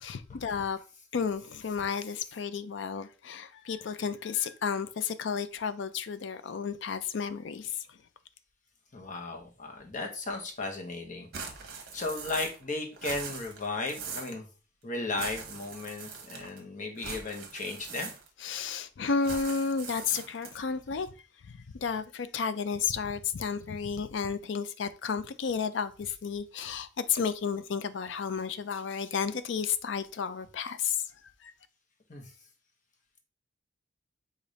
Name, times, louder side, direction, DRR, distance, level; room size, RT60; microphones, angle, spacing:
voice 1, 0.0-0.8 1.1-7.8 18.4-21.1 21.5-31.0 31.4-31.5, left 6 dB, 65° left, 0.4 m, -32 dB
voice 2, 1.6-2.2 8.9-11.3 11.9-14.5 14.8-18.1 32.1-32.2, left 3 dB, 40° left, 1.0 m, -35 dB
sound 1, 11.3-12.7 12.9-14.4 15.1-16.6 17.0-18.5 19.2-20.7, right 5 dB, 55° right, 1.0 m, -42 dB
4.9 x 2.5 x 4.0 m
head